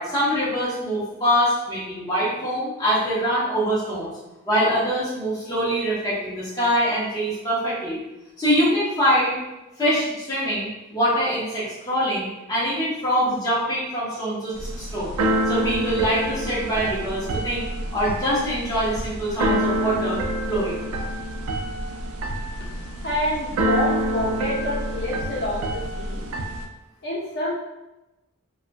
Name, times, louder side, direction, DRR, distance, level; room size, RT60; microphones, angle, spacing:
voice 1, 0.0-4.1 4.5-8.0 8.4-9.4 9.8-15.1 15.5-20.2 20.5-20.8, equal, 15° left, -9 dB, 0.8 m, -24 dB
Keyboard (musical), 14.6-26.7, right 1 dB, 85° right, 0.3 m, -27 dB
voice 2, 23.0-26.2 27.0-27.5, left 1 dB, 50° left, -6 dB, 0.7 m, -27 dB
2.6 x 2.3 x 2.5 m, 1.0 s
head